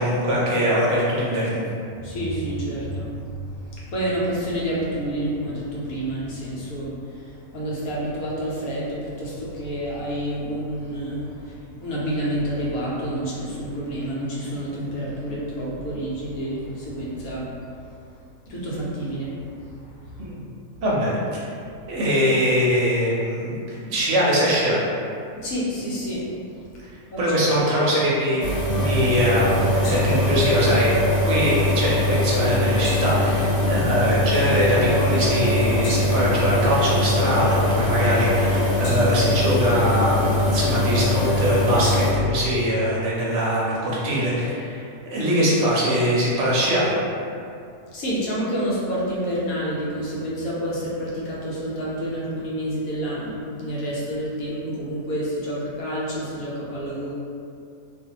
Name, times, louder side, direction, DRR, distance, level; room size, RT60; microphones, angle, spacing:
voice 1, 0.0-1.6 20.2-20.4 20.8-21.2 21.9-24.8 27.2-31.0 31.2-46.9, equal, 65° right, -6 dB, 0.9 m, -22 dB
voice 2, 2.0-3.2 3.6-17.5 18.5-19.3 25.4-26.3 27.1-27.2 47.9-57.1, equal, 85° left, -7 dB, 1.2 m, -28 dB
sound 1, 28.4-42.1, left 1 dB, 65° left, 0.8 m, -21 dB
2.6 x 2.5 x 2.8 m, 2.4 s
omnidirectional pair, 1.5 m